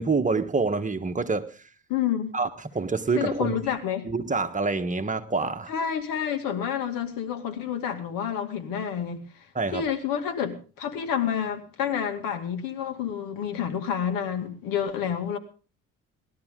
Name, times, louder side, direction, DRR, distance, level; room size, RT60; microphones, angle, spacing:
voice 1, 0.0-1.4 2.3-3.6 4.0-5.7 9.5-9.8, right 4 dB, 25° right, 1.5 m, -26 dB
voice 2, 1.9-2.3 3.2-4.0 5.7-9.3 9.7-15.4, left 8 dB, 80° left, 2.4 m, -29 dB
19.5 x 12.5 x 3.8 m
supercardioid pair, 75°, 33 cm